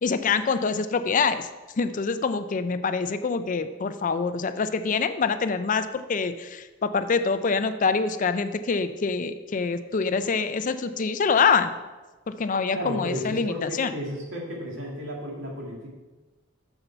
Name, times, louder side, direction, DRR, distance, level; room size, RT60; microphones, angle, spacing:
voice 1, 0.0-1.5 1.8-11.7 12.3-13.9, left 5 dB, 40° left, 11 dB, 0.4 m, -25 dB
voice 2, 12.7-15.9, equal, 70° right, -2 dB, 2.2 m, -33 dB
8.0 x 7.0 x 4.5 m, 1.2 s
head